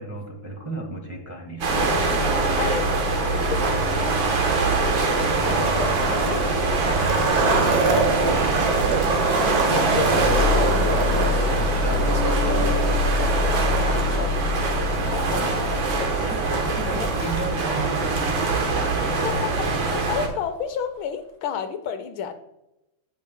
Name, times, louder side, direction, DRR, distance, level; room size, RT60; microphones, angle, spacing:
voice 1, 0.0-2.0 8.7-9.0 11.5-12.1 15.0-15.7 16.2-19.2, right 1 dB, 10° right, 0 dB, 1.1 m, -35 dB
sound 1, 1.6-20.3, right 2 dB, 70° right, 1.9 m, -23 dB
voice 2, 2.6-5.2 5.4-8.9 9.5-11.6 12.0-14.7 15.1-16.2 16.9-17.4 19.2-22.3, left 7 dB, 75° left, 9 dB, 1.4 m, -33 dB
Skateboard, 3.0-20.0, right 3 dB, 55° right, 1.3 m, -28 dB
9.1 x 8.9 x 2.2 m, 0.89 s
omnidirectional pair, 2.3 m